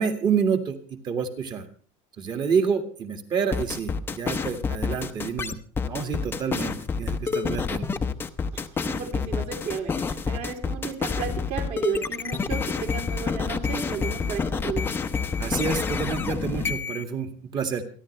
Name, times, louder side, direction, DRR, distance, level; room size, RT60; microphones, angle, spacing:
voice 1, 0.0-1.7 2.2-5.6 5.9-7.9 15.4-17.8, right 6 dB, 30° right, 6 dB, 2.0 m, -28 dB
sound 1, 3.5-17.0, left 5 dB, 15° left, 0.7 m, -28 dB
voice 2, 8.5-14.9, right 6 dB, 50° right, 3 dB, 3.4 m, -33 dB
28.0 x 11.0 x 3.3 m, 0.41 s
cardioid pair, 175°, 15 cm